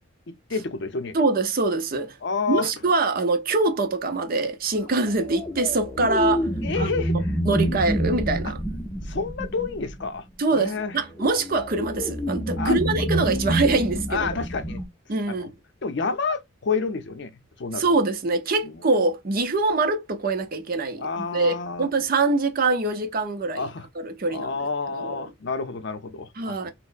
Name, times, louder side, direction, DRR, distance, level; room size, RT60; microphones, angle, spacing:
voice 1, 0.3-1.2 2.2-2.7 6.6-7.4 9.0-10.3 10.5-11.0 12.6-12.8 14.1-14.8 15.3-15.5 15.8-17.8 18.6-18.8 21.0-21.9 23.6-23.9 24.3-26.7, left 4 dB, 60° left, 0.5 m, -29 dB
voice 2, 1.1-2.2 2.5-6.5 6.8-6.9 7.5-8.6 10.4-14.3 15.1-15.5 17.8-23.7 24.0-24.5 25.0-25.3 26.4-26.7, right 3 dB, 45° right, 0.6 m, -24 dB
sound 1, 5.0-10.2 11.1-14.9, equal, 15° left, 0.6 m, -27 dB
4.2 x 2.0 x 2.5 m
head